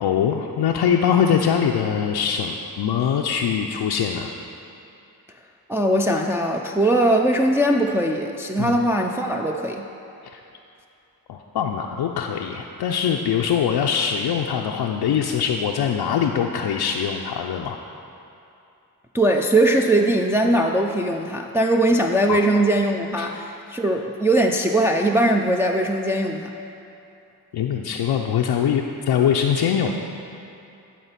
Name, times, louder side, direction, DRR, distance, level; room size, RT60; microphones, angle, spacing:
voice 1, 0.0-4.3 8.6-8.7 10.2-10.4 11.3-17.8 22.3-22.4 23.2-23.3 27.5-29.9, left 8 dB, 85° left, 0 dB, 0.5 m, -22 dB
voice 2, 5.7-9.8 19.1-26.5, right 1 dB, 5° right, 1 dB, 0.5 m, -20 dB
11.0 x 4.4 x 5.7 m, 2.7 s
cardioid pair, 55°, 39 cm